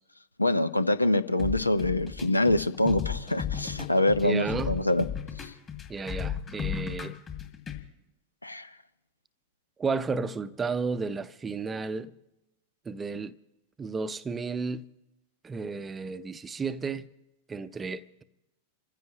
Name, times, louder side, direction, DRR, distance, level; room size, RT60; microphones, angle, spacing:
voice 1, 0.4-5.1 5.4-5.5 8.4-8.7, left 1 dB, 85° left, 0.6 m, -25 dB
sound 1, 1.4-7.8, left 8 dB, 25° left, 1.9 m, -35 dB
voice 2, 4.2-4.8 5.9-7.2 9.8-12.1 12.9-13.3 13.8-14.8 15.4-17.1 17.5-18.2, right 4 dB, 15° right, 0.6 m, -32 dB
29.0 x 15.0 x 2.9 m
figure-of-eight pair, 90°, 0 cm